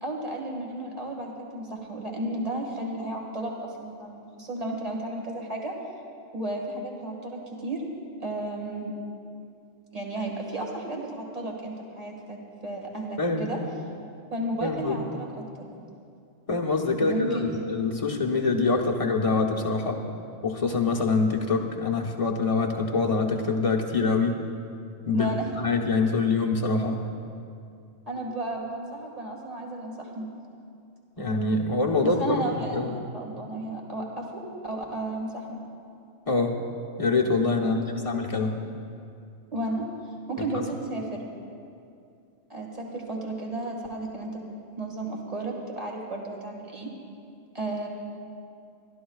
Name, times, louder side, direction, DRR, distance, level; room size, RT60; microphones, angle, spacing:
voice 1, 0.0-5.7 6.3-7.8 8.2-8.9 9.9-13.6 14.3-15.7 17.0-17.6 25.1-25.5 28.1-30.3 31.2-31.3 32.0-35.6 37.6-38.3 39.5-39.9 40.3-41.3 42.5-44.4 44.8-46.9 47.5-47.9, right 1 dB, 30° right, 0 dB, 1.9 m, -33 dB
voice 2, 14.6-15.0 16.5-20.0 20.4-24.4 25.0-25.3 25.6-27.0 31.2-33.1 36.3-36.6 37.0-38.5 40.5-40.6, left 3 dB, 30° left, 0 dB, 1.0 m, -25 dB
27.5 x 12.5 x 2.4 m, 2.5 s
omnidirectional pair, 1.4 m